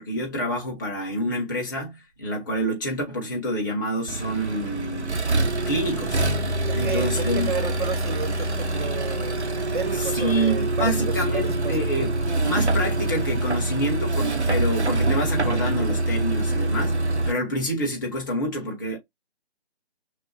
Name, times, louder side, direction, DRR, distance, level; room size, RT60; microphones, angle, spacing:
voice 1, 0.0-5.2 5.7-6.2 6.7-7.5 10.1-12.1 12.4-17.0 17.2-19.0, equal, 20° left, 1.1 m, -27 dB
Accelerating revving vroom, 4.1-17.3, right 2 dB, 90° right, 0.9 m, -25 dB
voice 2, 6.7-11.9, right 5 dB, 45° right, 0.8 m, -32 dB
6.1 x 2.1 x 2.9 m
figure-of-eight pair, 150°, 33 cm